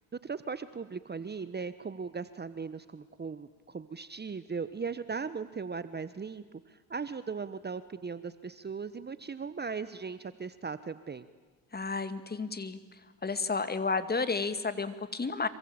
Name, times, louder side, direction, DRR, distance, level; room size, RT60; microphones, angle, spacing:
voice 1, 0.1-11.3, right 5 dB, 25° right, 14 dB, 1.2 m, -38 dB
voice 2, 11.7-12.8 13.2-15.5, left 4 dB, 20° left, 12 dB, 2.3 m, -31 dB
27.0 x 24.0 x 8.9 m, 1.4 s
supercardioid pair, 80°, 43 cm